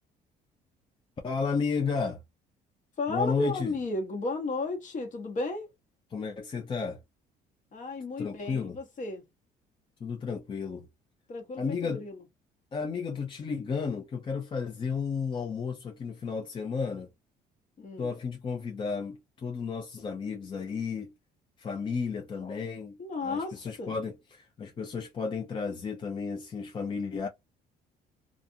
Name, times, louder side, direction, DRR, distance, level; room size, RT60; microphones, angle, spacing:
voice 1, 1.2-2.2 3.1-3.7 6.1-7.0 8.2-8.8 10.0-10.9 11.6-12.0 12.7-17.1 18.0-21.1 21.6-27.3, left 5 dB, 30° left, 0.5 m, -33 dB
voice 2, 3.0-5.7 7.7-9.2 11.3-12.2 17.8-18.1 23.0-24.0, left 3 dB, 50° left, 1.2 m, -34 dB
2.4 x 2.4 x 2.7 m
cardioid pair, 110°, 17 cm